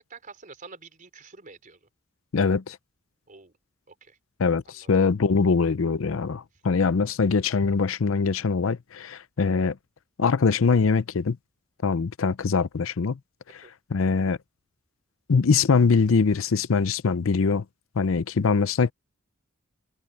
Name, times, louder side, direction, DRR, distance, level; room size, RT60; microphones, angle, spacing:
voice 1, 0.0-1.8 3.3-3.5 3.9-4.2 4.7-4.9 13.6-13.7, right 4 dB, 40° right, 4.1 m, -47 dB
voice 2, 2.3-2.8 4.4-9.8 10.2-11.4 11.8-13.2 13.5-13.6 13.9-14.4 15.3-17.6 18.0-18.9, left 5 dB, 65° left, 0.5 m, -23 dB
head